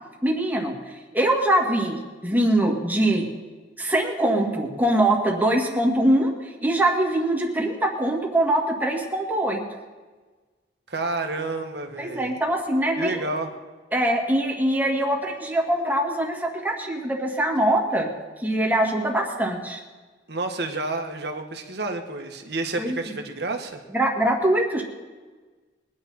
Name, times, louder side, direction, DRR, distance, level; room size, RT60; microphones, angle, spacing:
voice 1, 0.2-0.7 1.1-3.2 3.8-6.3 6.6-9.6 12.0-13.3 13.9-18.1 18.4-19.8 22.8-23.0 23.9-24.8, right 1 dB, 10° right, -1 dB, 2.3 m, -23 dB
voice 2, 10.9-12.3 13.0-13.5 20.3-23.8, right 2 dB, 70° right, 5 dB, 1.6 m, -30 dB
22.5 x 10.0 x 4.3 m, 1.3 s
head